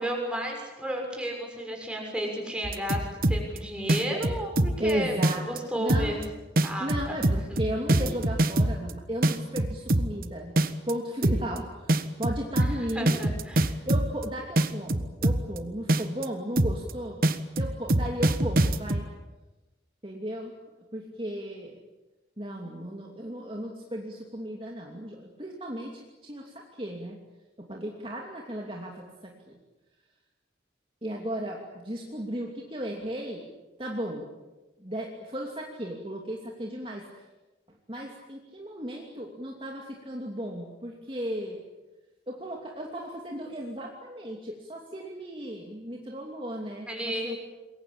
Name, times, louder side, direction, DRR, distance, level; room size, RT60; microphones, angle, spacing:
voice 1, 0.0-5.1 5.5-6.2 6.6-7.1 7.5-7.6 12.6-13.7 46.9-47.4, equal, 5° right, 1 dB, 6.8 m, -33 dB
sound 1, 2.6-3.6 3.9-4.9 5.2-5.6 5.9-6.2 6.6-8.9 9.2-10.2 10.6-10.9 11.2-11.6 11.9-14.2 14.6-15.6 15.9-16.2 16.6-16.9 17.2-19.0, right 1 dB, 50° right, 1.3 m, -23 dB
voice 2, 4.8-6.2 6.8-10.5 10.9-13.2 13.8-17.2 17.6-19.1 20.0-20.5 20.9-21.8 22.4-27.2 27.6-29.6 31.0-33.4 33.8-34.3 34.8-37.0 37.9-41.6 42.3-47.4, equal, 30° right, 0 dB, 2.8 m, -35 dB
27.5 x 22.5 x 8.6 m, 1.1 s
head